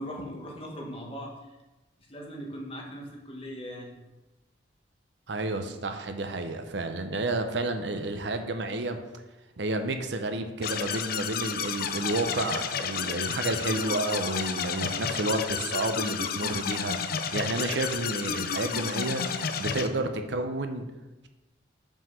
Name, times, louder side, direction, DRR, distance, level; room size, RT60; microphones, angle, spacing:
voice 1, 0.0-1.3 2.1-4.0, equal, 30° left, -1 dB, 1.5 m, -39 dB
voice 2, 5.3-9.0 9.6-17.0 17.3-20.8, right 2 dB, 65° right, 7 dB, 0.7 m, -30 dB
sound 1, 10.6-19.9, left 6 dB, 55° left, 0.5 m, -31 dB
5.6 x 5.2 x 6.2 m, 1.1 s
head